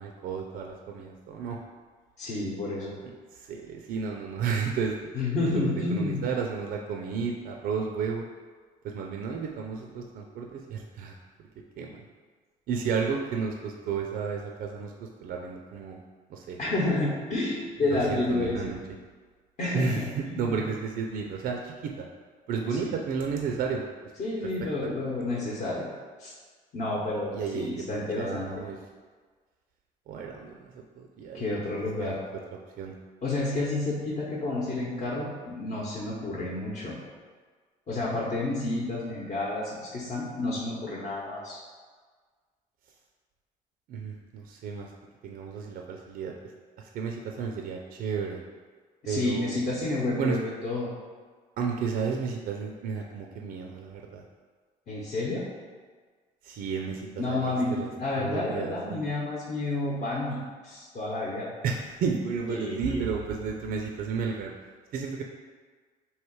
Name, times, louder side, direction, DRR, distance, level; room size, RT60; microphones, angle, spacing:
voice 1, 0.0-1.6 3.0-5.1 5.5-8.2 8.8-11.2 11.8-12.0 12.7-16.0 16.3-16.6 17.9-18.8 19.7-22.0 22.5-23.8 24.4-24.9 25.2-25.3 27.3-27.7 28.2-28.8 30.1-31.5 32.0-32.1 32.8-33.0 43.9-44.9 45.2-46.4 46.8-48.4 49.1-49.6 50.2-50.4 51.6-54.2 56.4-57.9 58.2-59.0 61.6-64.5 64.9-65.2, right 5 dB, 60° right, 1 dB, 0.4 m, -32 dB
voice 2, 2.2-2.9 5.1-6.3 16.6-18.7 19.6-20.6 22.8-22.9 24.2-25.9 26.2-26.3 26.7-28.5 31.3-32.2 33.2-36.9 37.9-41.6 49.0-50.9 54.9-55.4 57.2-60.4 60.6-61.5 62.5-63.0, left 2 dB, 45° left, -5 dB, 0.9 m, -30 dB
3.2 x 2.8 x 4.6 m, 1.5 s
cardioid pair, 110°, 17 cm